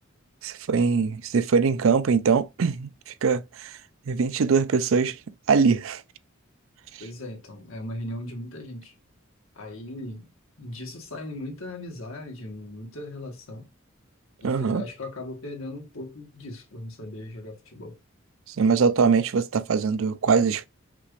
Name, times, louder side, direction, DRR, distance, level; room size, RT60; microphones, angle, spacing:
voice 1, 0.4-3.8 4.1-5.2 5.5-6.0 6.9-7.0 14.4-14.8 18.5-20.7, right 5 dB, 75° right, 0.4 m, -22 dB
voice 2, 7.0-8.9 9.5-10.3 10.6-13.7 14.4-18.0, left 1 dB, 85° left, 1.6 m, -38 dB
5.8 x 2.5 x 3.1 m
head